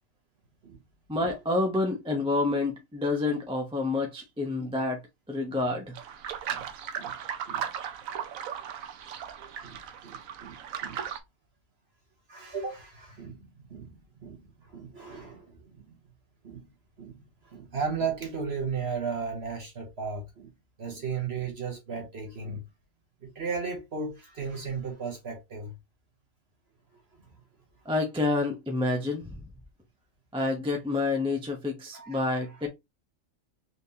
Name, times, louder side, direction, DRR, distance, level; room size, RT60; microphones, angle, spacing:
voice 1, 1.1-5.0 5.3-6.0 27.8-29.4 30.3-32.7, left 2 dB, 5° right, 0.6 m, -28 dB
sound 1, 5.9-11.2, right 8 dB, 90° right, 1.1 m, -37 dB
voice 2, 9.6-11.0 12.3-16.0 16.4-16.7 17.0-20.5 20.8-22.6 23.2-25.7 31.9-32.6, right 5 dB, 50° right, 1.2 m, -36 dB
4.2 x 3.4 x 2.7 m
omnidirectional pair, 1.4 m